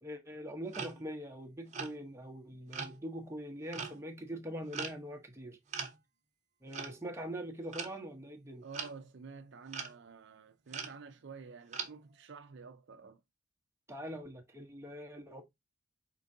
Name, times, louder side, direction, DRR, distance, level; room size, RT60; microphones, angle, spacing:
voice 1, 0.0-5.6 6.6-8.6 13.9-15.4, equal, 15° right, 0.9 m, -43 dB
sound 1, 0.7-1.1 1.7-2.0 2.7-3.0 3.7-4.0 4.7-5.0 5.7-6.0 6.7-7.0 7.7-8.0 8.7-8.9 9.7-9.9 10.7-11.0 11.7-11.9, right 6 dB, 35° right, 1.0 m, -40 dB
voice 2, 8.6-13.2, right 5 dB, 60° right, 0.5 m, -50 dB
4.5 x 3.8 x 2.6 m
head